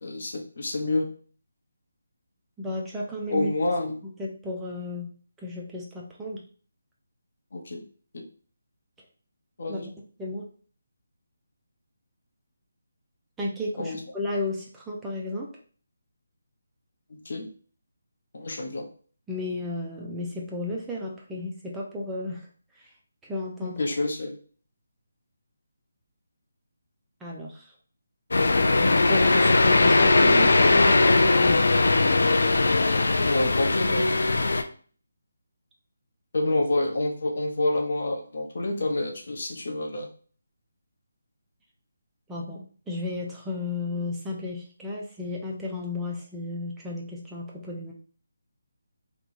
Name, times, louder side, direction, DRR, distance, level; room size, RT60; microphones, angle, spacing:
voice 1, 0.0-1.1 3.3-4.0 7.5-7.8 8.1-8.2 9.6-9.9 13.8-14.0 17.1-17.5 18.3-18.9 23.6-24.4 33.2-34.0 36.3-40.1, left 2 dB, 55° left, 2 dB, 0.9 m, -28 dB
voice 2, 2.6-3.5 4.2-5.1 5.4-6.4 9.7-9.8 10.2-10.5 13.4-15.5 19.3-22.4 23.2-23.8 27.2-27.6 28.8-31.7 42.3-47.9, left 2 dB, 5° right, -3 dB, 0.5 m, -33 dB
sound 1, 28.3-34.6, left 2 dB, 75° left, 0.4 m, -20 dB
3.0 x 2.2 x 4.1 m, 0.42 s
hypercardioid pair, 170°, 0 cm